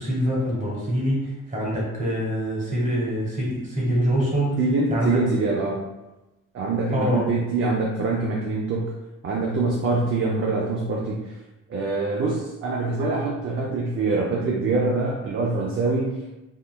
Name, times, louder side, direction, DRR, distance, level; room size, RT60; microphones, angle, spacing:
voice 1, 0.0-4.6 4.9-5.1 6.9-7.3, equal, 25° right, -4 dB, 1.2 m, -25 dB
voice 2, 4.6-5.9 6.5-9.0 9.2-11.3 11.7-16.2, right 3 dB, 45° right, -3 dB, 0.5 m, -24 dB
3.8 x 2.1 x 2.3 m, 1.0 s
cardioid pair, 90°, 30 cm